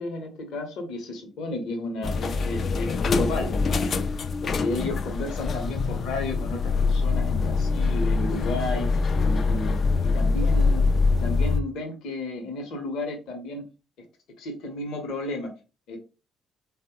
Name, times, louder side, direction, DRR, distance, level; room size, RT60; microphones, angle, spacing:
voice 1, 0.0-9.8 10.0-10.8 11.2-13.6 14.4-15.5 15.9-16.0, left 2 dB, 70° left, 3 dB, 0.7 m, -32 dB
sound 1, 2.0-11.6, left 4 dB, 50° left, 0.3 m, -24 dB
3.3 x 2.0 x 2.9 m, 0.31 s
hypercardioid pair, 50°, 0 cm